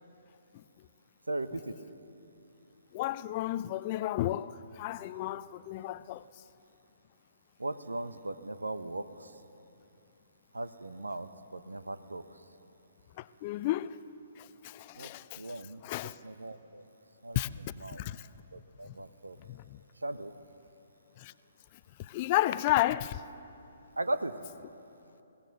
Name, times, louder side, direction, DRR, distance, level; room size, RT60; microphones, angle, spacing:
voice 1, 1.3-1.8 7.6-9.3 10.5-12.2 15.0-15.1 15.4-15.8 16.2-16.8 17.2-17.4 17.8-18.0 18.5-19.4 20.0-20.3 24.0-24.3, right 2 dB, 80° right, 1.0 m, -37 dB
voice 2, 2.9-6.2 13.2-14.0 14.4-16.2 17.4-17.5 17.9-18.2 19.5-19.8 21.2-21.3 22.1-23.2, left 15 dB, 35° left, 0.5 m, -32 dB
22.0 x 17.0 x 6.8 m
figure-of-eight pair, 130°, 0 cm